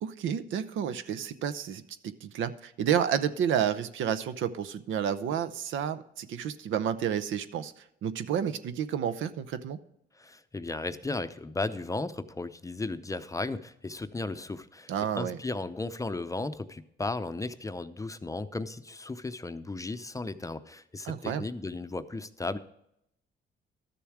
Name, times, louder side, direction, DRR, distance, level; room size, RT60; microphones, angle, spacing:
voice 1, 0.0-7.7 8.0-9.8 14.9-15.4 21.0-21.5, right 9 dB, 80° right, 12 dB, 0.7 m, -30 dB
voice 2, 10.2-22.6, left 2 dB, 15° left, 10 dB, 0.6 m, -35 dB
12.5 x 7.0 x 4.7 m, 0.77 s
cardioid pair, 90°, 20 cm